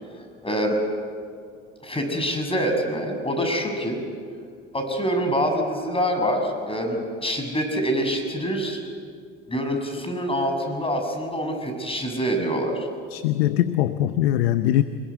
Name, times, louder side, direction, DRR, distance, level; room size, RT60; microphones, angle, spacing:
voice 1, 0.4-0.8 1.8-4.0 4.7-8.8 9.5-12.9, equal, 20° left, 4 dB, 6.7 m, -25 dB
voice 2, 13.1-14.8, left 13 dB, 80° left, 12 dB, 0.8 m, -21 dB
26.0 x 21.0 x 8.2 m, 2.2 s
hypercardioid pair, 65°, 31 cm